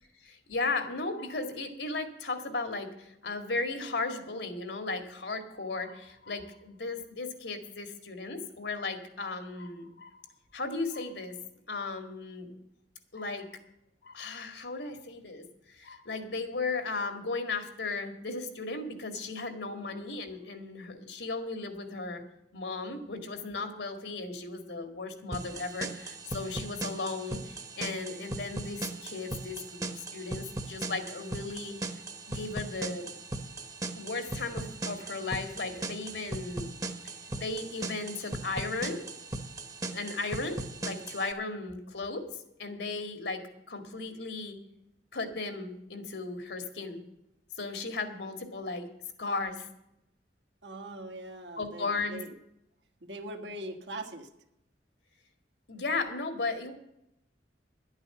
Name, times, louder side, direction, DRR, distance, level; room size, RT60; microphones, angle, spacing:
voice 1, 0.2-10.2 10.5-11.4 11.7-12.5 13.1-13.5 14.0-22.2 22.5-29.6 30.0-31.9 32.3-33.1 34.0-36.7 37.0-39.0 39.9-42.3 42.6-43.4 43.7-44.6 45.1-47.0 47.6-48.9 49.2-49.7 51.6-52.2 55.7-56.7, left 3 dB, 80° left, 7 dB, 1.9 m, -36 dB
sound 1, 25.3-41.3, right 2 dB, 20° right, 0.9 m, -39 dB
voice 2, 50.6-52.3 53.0-54.3, right 1 dB, 85° right, 4 dB, 1.7 m, -41 dB
11.5 x 8.8 x 7.7 m, 0.82 s
head